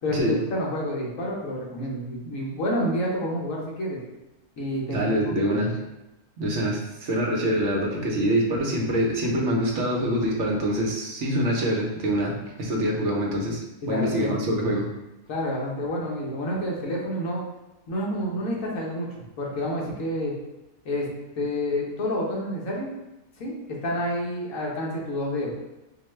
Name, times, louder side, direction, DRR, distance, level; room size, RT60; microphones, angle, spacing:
voice 1, 0.0-4.0 4.6-5.6 13.8-14.5 15.3-17.4 17.9-19.1 19.4-20.3 20.8-21.1 21.4-22.9 23.4-25.5, left 1 dB, 65° left, -3 dB, 1.3 m, -29 dB
voice 2, 4.9-5.7 6.4-13.6 13.9-14.9, equal, 60° right, -1 dB, 1.0 m, -25 dB
4.9 x 2.2 x 3.1 m, 0.96 s
omnidirectional pair, 1.5 m